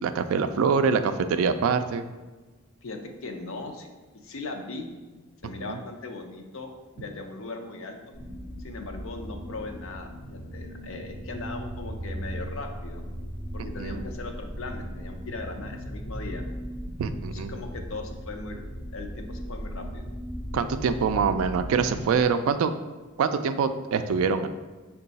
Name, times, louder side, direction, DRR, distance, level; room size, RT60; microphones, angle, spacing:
voice 1, 0.0-2.1 5.7-5.8 13.6-14.0 17.0-17.5 20.5-22.7 23.2-24.5, right 5 dB, 70° right, 10 dB, 0.3 m, -25 dB
voice 2, 2.8-3.9 4.2-4.9 5.4-8.2 8.6-13.0 13.5-16.4 17.3-18.6 18.9-20.0, left 3 dB, 65° left, 4 dB, 0.6 m, -39 dB
sound 1, 8.1-22.2, equal, 20° left, 0.9 m, -37 dB
5.4 x 2.3 x 3.9 m, 1.3 s
head